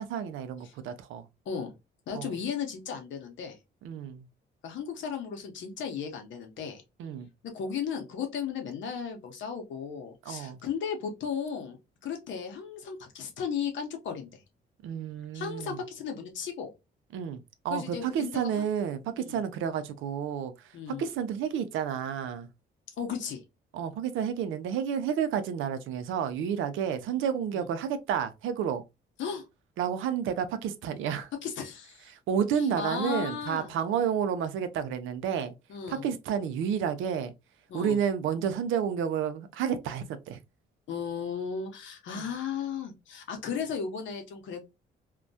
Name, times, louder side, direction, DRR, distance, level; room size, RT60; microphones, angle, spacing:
voice 1, 0.0-1.3 2.1-2.3 3.8-4.3 7.0-7.3 10.3-10.6 14.8-15.8 17.1-22.5 23.7-28.8 29.8-31.3 32.1-35.5 35.9-37.3 37.7-40.4 42.1-42.3, right 8 dB, 85° right, 0.4 m, -31 dB
voice 2, 2.1-3.6 4.6-6.8 7.5-11.8 12.0-14.4 15.3-16.7 17.7-18.6 19.2-19.4 20.7-21.0 23.0-23.4 27.5-27.6 29.2-29.5 31.4-32.1 32.8-33.8 35.7-36.0 37.7-38.0 40.9-44.6, left 7 dB, 70° left, 0.8 m, -35 dB
2.2 x 2.1 x 2.6 m
cardioid pair, 90°, 20 cm